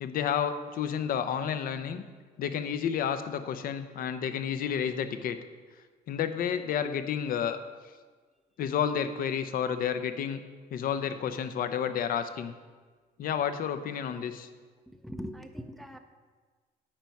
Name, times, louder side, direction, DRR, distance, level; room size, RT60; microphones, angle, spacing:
voice 1, 0.0-2.0 2.4-5.4 6.1-7.6 8.6-10.4 10.7-12.5 13.2-14.5, left 8 dB, 60° left, 10 dB, 0.6 m, -30 dB
voice 2, 14.9-16.0, equal, ahead, 6 dB, 0.5 m, -41 dB
8.8 x 4.7 x 5.4 m, 1.4 s
cardioid pair, 110°, 17 cm